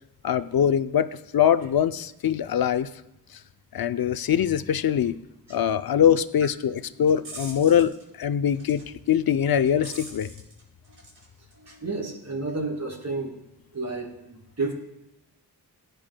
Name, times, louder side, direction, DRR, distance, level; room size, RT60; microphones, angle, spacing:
voice 1, 0.2-2.9 3.7-5.2 5.5-8.8 9.1-10.3, left 9 dB, 60° left, 12 dB, 0.5 m, -23 dB
sound 1, 6.8-8.0 8.5-8.8 9.1-11.2 11.5-12.0, right 2 dB, 75° right, 4.2 m, -44 dB
voice 2, 11.7-13.3 13.7-14.7, right 3 dB, 40° right, 0 dB, 2.7 m, -31 dB
16.5 x 9.2 x 2.2 m, 0.94 s
wide cardioid pair, 90°, 41 cm